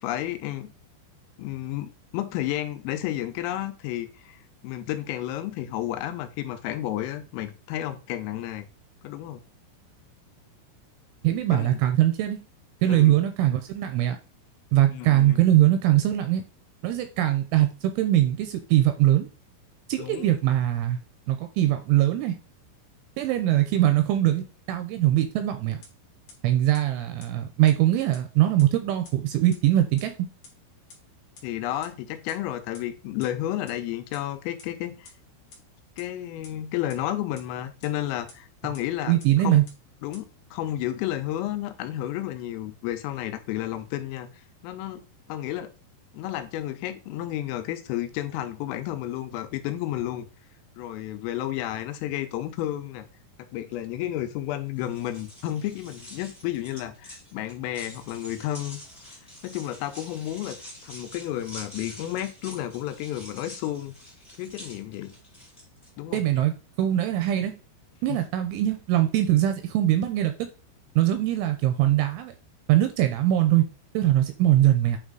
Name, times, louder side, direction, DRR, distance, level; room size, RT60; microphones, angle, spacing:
voice 1, 0.0-0.7 1.4-8.7 9.0-9.4 11.5-11.8 12.9-13.2 14.9-15.4 20.0-20.3 31.4-35.1 36.0-39.2 39.4-39.6 40.0-45.0 45.3-45.7 46.1-50.2 50.8-53.1 53.5-58.8 59.4-60.6 60.8-63.9 64.4-65.1 66.0-66.2 68.1-68.2, left 13 dB, 85° left, 3.3 m, -32 dB
voice 2, 11.2-12.4 12.8-14.2 14.7-16.4 16.8-19.3 19.9-21.0 21.3-22.4 23.2-25.8 26.4-30.1 39.0-39.6 66.1-67.5 68.0-70.3 71.0-72.3 72.7-73.7 73.9-75.0, right 13 dB, 85° right, 2.9 m, -22 dB
sound 1, 25.8-25.9 26.3-26.4 26.7-26.8 27.2-27.3 27.7-27.8 28.1-28.2 28.6-28.7 29.0-29.1 29.5-29.6 30.0-30.1 30.4-30.5 30.9-31.0 31.3-31.4 31.8-31.9 32.3-32.4 32.7-32.8 33.2-33.3 33.7-33.8 34.1-34.2 34.6-34.7 35.0-35.1 35.5-35.6 36.0-36.1 36.4-36.5 36.9-37.0 37.4-37.5 37.8-37.9 38.3-38.4 38.7-38.8 39.2-39.3 39.7-39.8 40.1-40.2, left 4 dB, 60° left, 1.9 m, -47 dB
sound 2, 54.7-65.9, left 1 dB, 10° left, 1.5 m, -46 dB
8.9 x 3.4 x 3.8 m
omnidirectional pair, 6.0 m